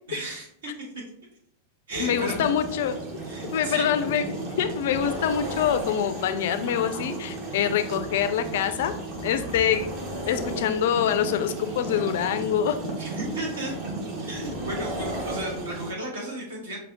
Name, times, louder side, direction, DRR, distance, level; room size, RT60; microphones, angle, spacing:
voice 1, 0.1-1.0 1.9-2.4 3.2-3.9 13.0-13.7 14.2-16.8, right 1 dB, 65° right, -1 dB, 1.3 m, -34 dB
sound 1, 1.9-15.9, right 2 dB, 40° right, 1.0 m, -34 dB
voice 2, 2.0-3.0 3.5-8.9 9.2-9.9 10.3-12.8, left 9 dB, 55° left, 10 dB, 0.3 m, -25 dB
5.3 x 2.6 x 2.8 m, 0.71 s
figure-of-eight pair, 90°, 0 cm